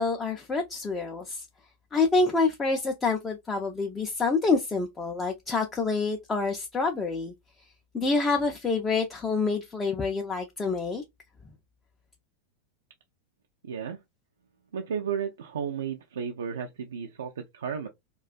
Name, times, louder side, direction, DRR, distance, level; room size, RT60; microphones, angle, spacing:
voice 1, 0.0-1.4 1.9-7.3 7.9-11.0, left 3 dB, 15° left, 0.4 m, -27 dB
voice 2, 13.6-14.0 14.7-17.9, right 7 dB, 65° right, 0.3 m, -33 dB
2.3 x 2.2 x 2.4 m
figure-of-eight pair, 90°, 0 cm